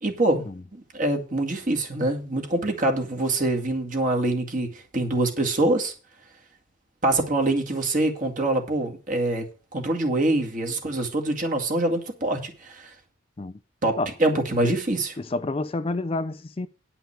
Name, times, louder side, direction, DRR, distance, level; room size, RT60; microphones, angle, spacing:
voice 1, 0.0-0.4 0.7-5.9 7.0-9.5 9.7-12.9 13.8-15.1, right 2 dB, 40° right, 2.2 m, -25 dB
voice 2, 15.2-16.7, left 2 dB, 30° left, 0.4 m, -29 dB
10.0 x 5.7 x 7.3 m
head